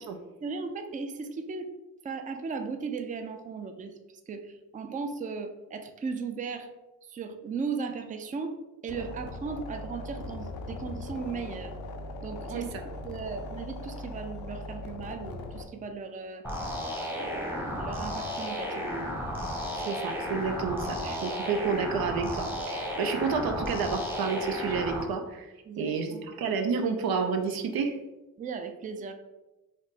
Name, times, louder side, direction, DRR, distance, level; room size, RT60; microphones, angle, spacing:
voice 1, 0.4-1.7 2.0-3.9 4.3-6.7 7.1-8.6 8.8-11.7 12.2-12.8 13.0-16.4 17.1-19.1 25.7-26.2 28.4-29.1, right 5 dB, 25° right, 6 dB, 0.3 m, -36 dB
sound 1, 8.9-15.6, left 2 dB, 85° left, 0.5 m, -40 dB
sound 2, 16.4-25.0, left 1 dB, 5° right, 0.8 m, -33 dB
voice 2, 19.8-25.5 25.8-27.9, right 5 dB, 85° right, 6 dB, 0.5 m, -30 dB
3.3 x 2.0 x 4.0 m, 1.1 s
cardioid pair, 65°, 35 cm